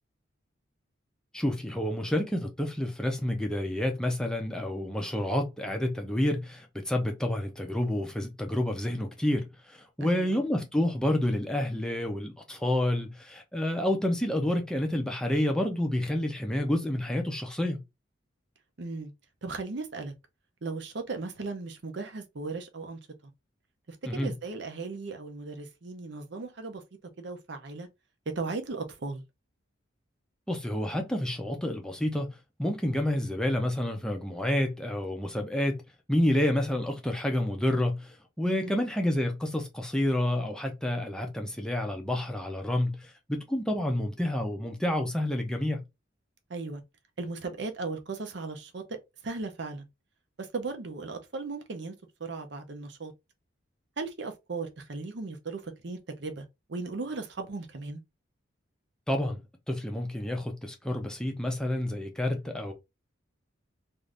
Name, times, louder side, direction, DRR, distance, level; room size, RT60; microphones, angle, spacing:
voice 1, 1.3-17.8 24.0-24.3 30.5-35.8 36.1-45.8 59.1-59.4 59.7-62.7, left 1 dB, 5° left, 0.5 m, -29 dB
voice 2, 10.0-10.4 18.8-19.1 19.4-20.1 20.6-23.0 23.9-26.8 27.2-27.9 28.3-29.2 38.4-38.8 46.5-46.8 47.2-48.8 49.2-49.9 50.4-51.9 52.2-53.1 54.0-58.0, right 3 dB, 60° right, 0.6 m, -37 dB
2.6 x 2.5 x 3.2 m
head